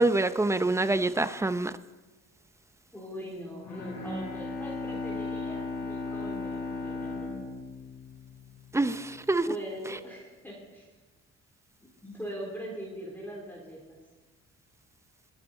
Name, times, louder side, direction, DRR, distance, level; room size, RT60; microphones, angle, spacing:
voice 1, 0.0-1.7 8.7-9.5, right 2 dB, 10° right, 0.6 m, -26 dB
voice 2, 2.9-7.5 9.4-10.9 11.8-14.0, equal, 5° left, 3.4 m, -41 dB
Bowed string instrument, 3.6-8.6, left 3 dB, 85° left, 4.5 m, -36 dB
23.5 x 8.7 x 4.2 m
cardioid pair, 90°, 30 cm